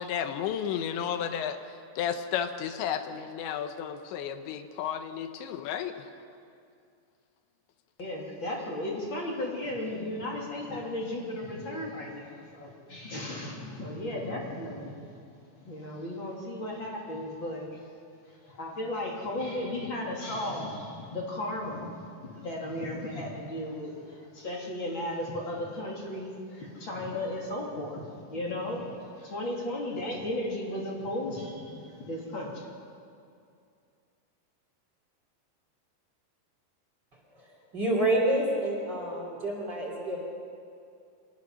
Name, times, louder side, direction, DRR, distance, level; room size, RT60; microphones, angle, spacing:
voice 1, 0.0-1.6 2.0-6.1, left 8 dB, 85° left, 9 dB, 3.2 m, -32 dB
voice 2, 8.0-15.2 15.6-17.9 18.2-32.7, left 1 dB, 30° left, -2 dB, 2.9 m, -35 dB
voice 3, 37.4-40.2, right 1 dB, 25° right, -2 dB, 3.2 m, -28 dB
25.0 x 18.5 x 6.4 m, 2.4 s
omnidirectional pair, 5.1 m